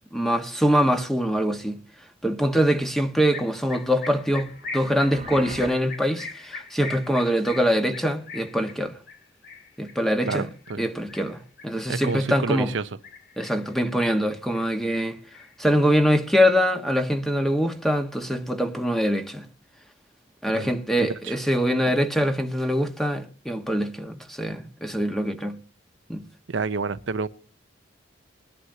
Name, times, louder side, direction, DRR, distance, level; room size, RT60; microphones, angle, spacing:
voice 1, 0.1-1.8 2.2-9.0 9.8-10.5 10.8-12.7 13.4-15.2 15.6-19.4 20.4-25.6 26.1-26.2, equal, ahead, 1.3 m, -23 dB
sound 1, 3.3-12.7 13.0-13.8 14.1-15.1 15.3-16.7, left 4 dB, 50° left, 2.6 m, -41 dB
sound 2, 4.3-5.7, right 3 dB, 35° right, 1.4 m, -41 dB
voice 2, 11.9-12.9 20.5-20.7 21.0-21.4 26.5-27.3, right 4 dB, 75° right, 0.7 m, -28 dB
21.5 x 11.0 x 2.8 m
head